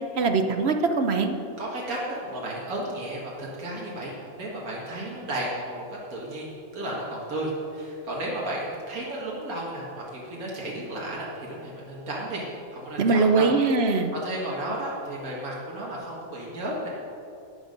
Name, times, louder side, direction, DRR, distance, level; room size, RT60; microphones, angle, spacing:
voice 1, 0.2-1.3 13.0-14.1, right 4 dB, 55° right, 6 dB, 1.0 m, -22 dB
voice 2, 1.6-12.4 12.7-13.5 13.8-16.9, right 1 dB, 80° right, -5 dB, 2.2 m, -33 dB
12.5 x 9.6 x 5.3 m, 2.7 s
omnidirectional pair, 1.5 m